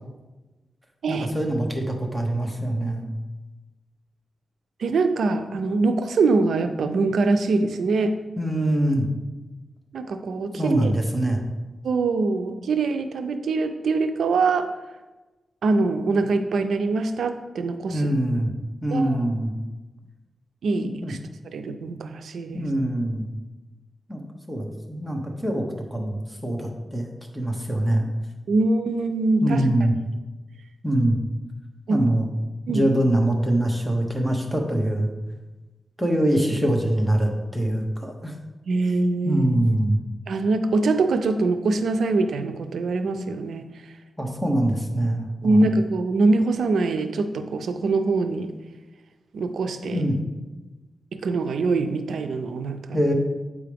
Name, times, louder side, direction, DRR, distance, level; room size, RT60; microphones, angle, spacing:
voice 1, 1.1-3.1 8.4-9.1 10.6-11.4 17.9-18.5 18.8-19.5 20.8-21.1 22.5-23.3 24.1-24.2 24.5-25.6 25.9-27.1 27.3-28.1 29.4-29.9 30.8-31.2 31.9-32.3 32.7-35.1 36.0-38.3 39.2-40.0 44.2-45.7 49.9-50.1 52.9-53.1, right 1 dB, 5° right, 1 dB, 1.1 m, -23 dB
voice 2, 4.8-8.2 9.9-10.9 11.8-14.7 15.6-18.1 18.9-19.2 20.6-21.2 21.5-22.7 28.5-29.6 31.9-32.0 32.7-32.9 38.7-39.5 40.3-43.7 45.4-48.5 49.3-50.0 51.1-53.0, right 3 dB, 85° right, 8 dB, 0.4 m, -23 dB
8.2 x 4.8 x 3.4 m, 1.2 s
wide cardioid pair, 90°, 0 cm